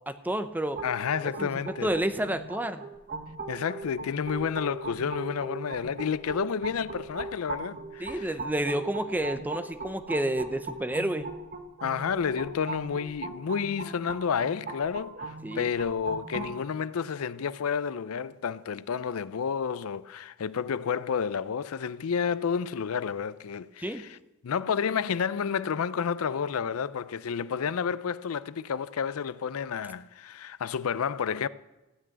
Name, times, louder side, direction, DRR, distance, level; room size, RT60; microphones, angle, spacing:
voice 1, 0.1-0.8 1.4-2.8 8.0-11.3 15.4-15.7 23.8-24.0, right 1 dB, 10° right, 0.7 m, -30 dB
voice 2, 0.8-1.9 3.5-8.3 11.8-24.2 24.4-31.5, left 6 dB, 90° left, 0.5 m, -30 dB
sound 1, 0.8-16.5, right 3 dB, 45° right, 1.4 m, -39 dB
15.0 x 6.2 x 9.1 m
head